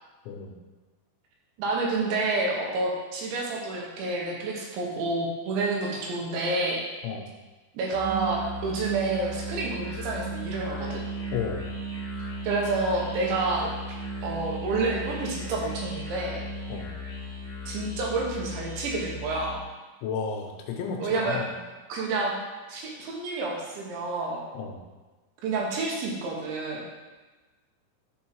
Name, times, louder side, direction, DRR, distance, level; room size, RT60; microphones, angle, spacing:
voice 1, 1.6-6.8 7.8-11.0 12.5-13.7 14.2-16.4 17.7-19.6 21.0-21.4 21.9-22.4 22.7-24.4 25.4-26.8, right 3 dB, 75° right, -2 dB, 3.4 m, -29 dB
Musical instrument, 7.9-19.6, right 1 dB, 25° left, 1.6 m, -36 dB
voice 2, 11.3-11.7 16.7-16.9 20.0-21.6 24.5-24.8, left 6 dB, 85° left, 2 dB, 3.0 m, -33 dB
11.0 x 4.6 x 4.5 m, 1.2 s
omnidirectional pair, 5.6 m